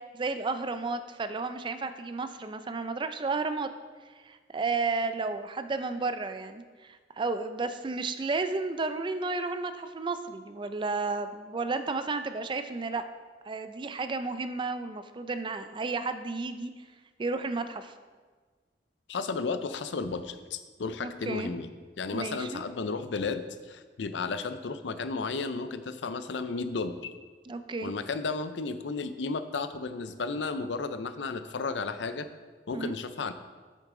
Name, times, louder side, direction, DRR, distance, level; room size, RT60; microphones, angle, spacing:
voice 1, 0.0-3.7 4.3-13.0 13.5-16.7 17.2-17.9 21.0-21.5 22.1-22.6 27.4-27.9 32.7-32.9, right 3 dB, 25° right, 10 dB, 0.4 m, -32 dB
voice 2, 19.1-21.7 22.0-26.9 27.8-32.3 32.7-33.3, left 4 dB, 80° left, 11 dB, 0.5 m, -33 dB
8.4 x 6.6 x 3.7 m, 1.4 s
head